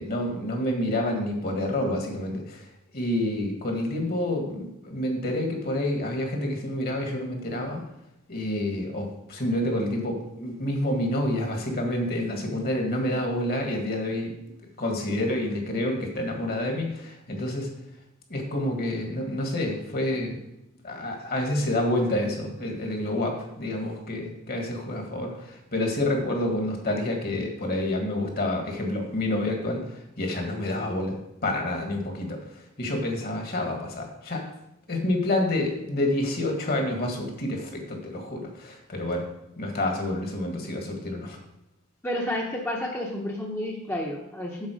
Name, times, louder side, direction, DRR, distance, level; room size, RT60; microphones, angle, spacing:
voice 1, 0.0-2.7 2.9-7.8 8.3-14.3 14.8-17.7 18.3-20.4 20.8-31.1 31.4-34.4 34.9-39.3 39.6-41.4, left 1 dB, 50° left, 2 dB, 1.6 m, -28 dB
voice 2, 42.0-44.7, left 1 dB, 10° left, -2 dB, 0.8 m, -31 dB
7.4 x 4.2 x 6.3 m, 0.85 s
head